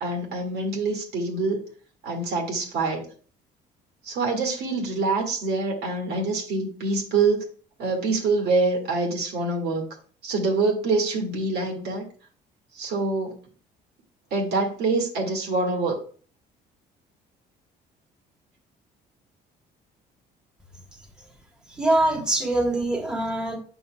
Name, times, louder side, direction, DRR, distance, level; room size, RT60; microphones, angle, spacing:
voice 1, 0.0-1.6 2.0-3.1 4.1-7.4 7.8-9.9 10.2-12.0 12.8-13.4 14.3-16.0, right 3 dB, 75° right, 1 dB, 1.9 m, -25 dB
voice 2, 21.8-23.6, right 1 dB, 5° right, 0 dB, 1.3 m, -23 dB
8.0 x 5.8 x 2.2 m, 0.42 s
cardioid pair, 110°, 17 cm